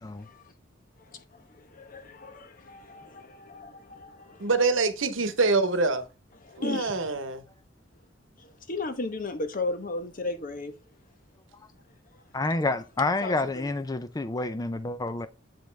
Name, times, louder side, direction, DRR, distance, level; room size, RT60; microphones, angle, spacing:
voice 1, 0.2-0.5 1.0-4.5 6.4-7.0 8.4-10.7 13.2-13.6, left 2 dB, 45° left, 1.0 m, -35 dB
voice 2, 4.4-6.1 6.6-7.4, right 3 dB, 85° right, 1.0 m, -25 dB
voice 3, 12.3-15.3, left 2 dB, 20° left, 0.4 m, -28 dB
7.5 x 5.2 x 3.4 m
head